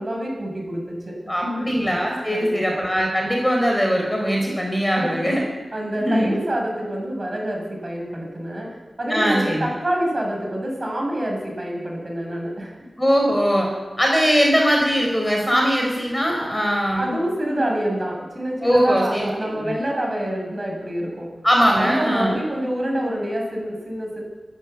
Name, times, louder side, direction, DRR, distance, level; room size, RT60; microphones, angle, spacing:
voice 1, 0.0-1.2 1.4-1.7 2.3-2.8 4.9-5.3 5.7-12.8 16.9-21.3 21.7-24.2, right 1 dB, 35° right, 0 dB, 7.3 m, -27 dB
voice 2, 1.3-5.4 6.0-6.3 9.1-9.7 13.0-13.7 14.0-17.1 18.6-19.7 21.4-22.4, equal, 10° left, 0 dB, 4.6 m, -20 dB
26.0 x 12.0 x 8.3 m, 1.3 s
wide cardioid pair, 105°, 0 cm